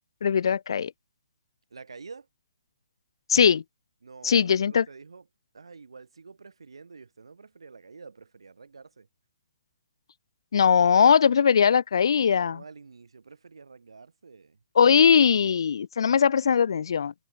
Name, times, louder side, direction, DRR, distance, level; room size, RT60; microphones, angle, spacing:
voice 1, 0.2-0.9 3.3-3.6 4.2-4.8 10.5-12.6 14.7-17.1, left 7 dB, 70° left, 1.2 m, -20 dB
voice 2, 1.7-2.3 4.0-5.2 5.5-9.1 12.1-14.6, right 4 dB, 90° right, 5.7 m, -48 dB
hypercardioid pair, 145°, 3 cm